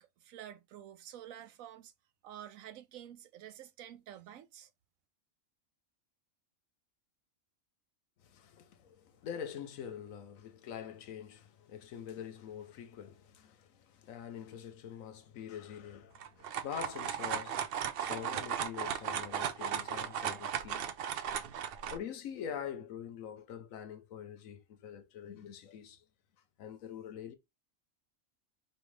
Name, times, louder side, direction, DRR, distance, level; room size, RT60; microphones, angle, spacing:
voice 1, 0.0-1.9 2.2-4.7, right 11 dB, 85° right, 1.1 m, -49 dB
voice 2, 8.2-20.9 21.9-26.0 26.6-27.3, left 8 dB, 80° left, 1.1 m, -45 dB
sound 1, 16.1-22.0, right 8 dB, 60° right, 0.6 m, -36 dB
4.5 x 3.3 x 3.1 m
omnidirectional pair, 1.4 m